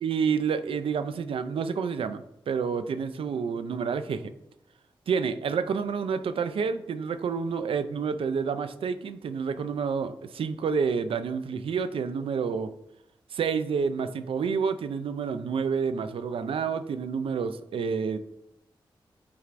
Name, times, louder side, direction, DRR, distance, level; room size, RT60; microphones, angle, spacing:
voice 1, 0.0-4.3 5.1-12.7 13.3-18.2, right 6 dB, 85° right, 11 dB, 0.4 m, -29 dB
8.5 x 4.4 x 2.5 m, 0.83 s
cardioid pair, 65°, 9 cm